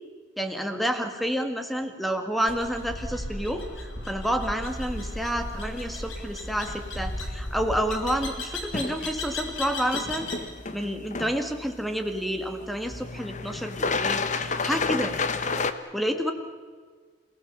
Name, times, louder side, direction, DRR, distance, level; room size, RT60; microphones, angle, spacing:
voice 1, 0.4-10.3 10.7-15.2 15.9-16.3, equal, ahead, 6 dB, 1.9 m, -29 dB
sound 1, 2.5-10.5, left 1 dB, 75° left, 3.5 m, -35 dB
sound 2, 4.7-15.7, left 4 dB, 40° left, 1.1 m, -33 dB
28.5 x 18.0 x 7.1 m, 1.5 s
head